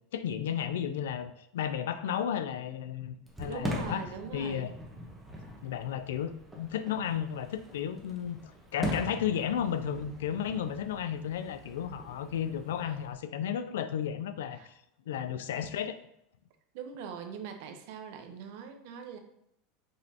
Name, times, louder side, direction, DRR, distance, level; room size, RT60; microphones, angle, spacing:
voice 1, 0.1-4.0 4.3-4.7 5.6-14.7 15.1-16.0, left 9 dB, 90° left, 11 dB, 0.4 m, -33 dB
Fireworks, 3.3-13.1, right 1 dB, 10° right, 0.9 m, -42 dB
voice 2, 3.5-4.7 14.6-14.7 16.7-19.2, right 7 dB, 65° right, 5 dB, 0.7 m, -42 dB
5.4 x 3.1 x 2.8 m, 0.78 s
supercardioid pair, 125°, 0 cm